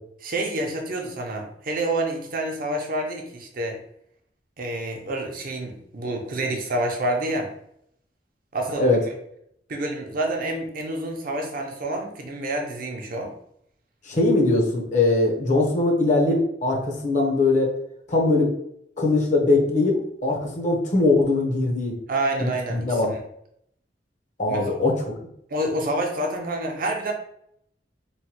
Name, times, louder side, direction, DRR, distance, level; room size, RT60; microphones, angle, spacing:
voice 1, 0.2-3.8 4.6-7.5 8.5-9.0 9.7-13.3 22.1-23.0 24.5-24.8 25.5-27.1, right 1 dB, 55° right, 2 dB, 0.6 m, -28 dB
voice 2, 14.1-17.7 18.1-18.5 19.0-21.9 22.4-23.1 24.4-25.0, left 2 dB, 45° left, 0 dB, 0.7 m, -21 dB
3.1 x 2.1 x 2.9 m, 0.70 s
head